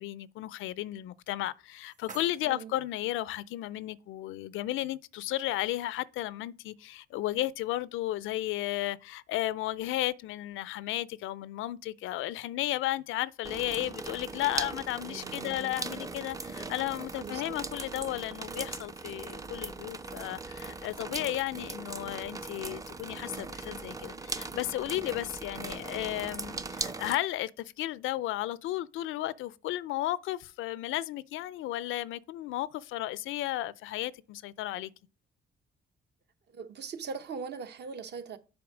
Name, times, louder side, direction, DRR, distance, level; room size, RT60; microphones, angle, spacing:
voice 1, 0.0-34.9, left 15 dB, 85° left, 0.4 m, -34 dB
sound 1, 1.3-3.3, right 4 dB, 40° right, 1.7 m, -53 dB
sound 2, 13.4-27.2, right 3 dB, 15° right, 0.5 m, -39 dB
voice 2, 15.0-15.8 17.2-17.6 36.5-38.4, right 5 dB, 60° right, 0.9 m, -41 dB
7.0 x 4.6 x 4.9 m
cardioid pair, 90°, 20 cm